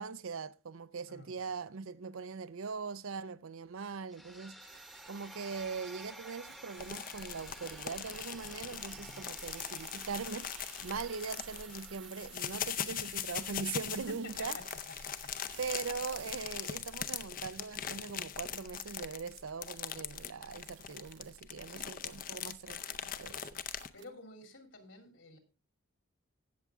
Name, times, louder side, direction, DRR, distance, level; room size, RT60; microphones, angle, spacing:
voice 1, 0.0-4.6 5.1-14.6 15.6-23.6, right 5 dB, 80° right, 0.6 m, -41 dB
voice 2, 1.1-1.4 8.9-9.3 13.9-14.6 15.0-15.3 21.6-22.1 23.9-25.4, left 2 dB, 65° left, 2.8 m, -51 dB
sound 1, 4.1-14.1, equal, ahead, 1.0 m, -53 dB
sound 2, 4.6-17.2 17.5-17.6 17.9-18.2 18.5-18.6 18.9-19.0 19.3-19.4 19.7-19.8 20.1-20.3 20.5-21.4 21.6-21.8 22.1-22.2 22.4-22.6 22.8-23.0 23.2-23.4 23.6-24.1, right 10 dB, 55° right, 0.9 m, -55 dB
sound 3, 6.8-23.9, left 9 dB, 40° left, 0.6 m, -41 dB
16.0 x 7.2 x 3.5 m
head